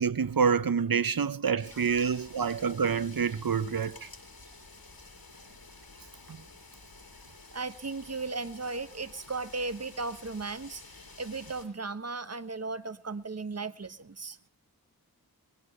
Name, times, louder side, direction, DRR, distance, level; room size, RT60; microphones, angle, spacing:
voice 1, 0.0-4.1 6.3-6.4, right 6 dB, 65° right, 0.9 m, -27 dB
sound 1, 1.6-11.7, left 3 dB, 70° left, 6.1 m, -51 dB
voice 2, 1.7-2.2 7.5-10.8 11.2-14.4, right 3 dB, 40° right, 1.3 m, -36 dB
21.5 x 17.0 x 3.3 m
wide cardioid pair, 40°, 37 cm